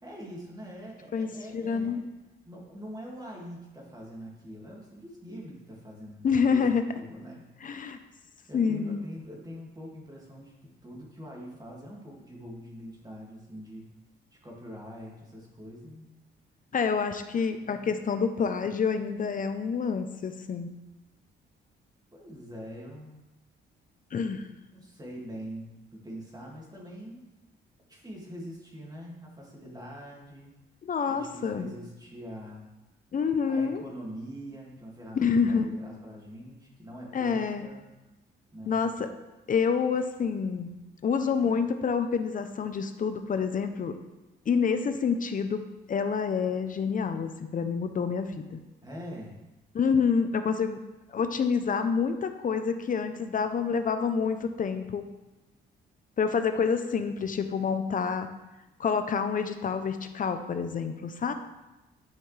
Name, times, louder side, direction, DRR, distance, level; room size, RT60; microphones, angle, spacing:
voice 1, 0.0-2.1 2.4-7.5 8.5-10.5 10.8-13.9 14.4-16.1 17.6-18.1 22.1-23.2 24.7-27.2 27.9-30.5 31.1-32.6 33.5-37.8 38.5-38.8 48.8-49.4, equal, 20° right, -2 dB, 2.3 m, -43 dB
voice 2, 1.1-2.0 6.2-6.8 7.6-8.0 8.5-9.0 16.7-20.7 24.1-24.5 30.8-31.7 33.1-33.8 35.2-35.7 37.1-37.7 38.7-39.1 39.5-40.7 41.0-43.9 44.5-45.6 45.9-48.6 49.7-50.8 51.1-55.1 56.2-58.3 58.8-61.3, left 6 dB, 45° left, 8 dB, 0.7 m, -27 dB
10.5 x 5.5 x 3.4 m, 1.0 s
cardioid pair, 90°, 20 cm